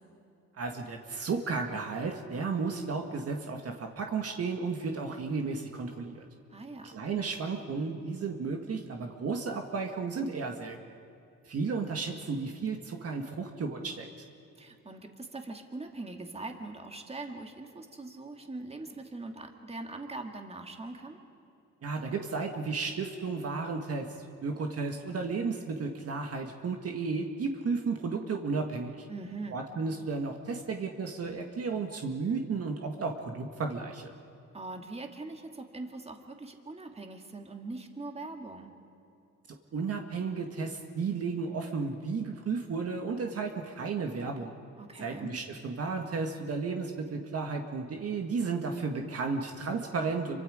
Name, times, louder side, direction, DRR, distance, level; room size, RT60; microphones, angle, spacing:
voice 1, 0.6-6.2 6.8-10.8 11.5-14.1 21.8-24.1 24.4-29.1 29.5-34.1 39.7-44.6 45.0-50.4, right 4 dB, 50° right, 3 dB, 1.8 m, -33 dB
voice 2, 6.5-6.9 14.6-21.2 29.1-29.6 34.5-38.7 44.8-45.4, right 2 dB, 20° right, 4 dB, 2.3 m, -42 dB
27.5 x 24.5 x 5.1 m, 2.6 s
cardioid pair, 90°, 30 cm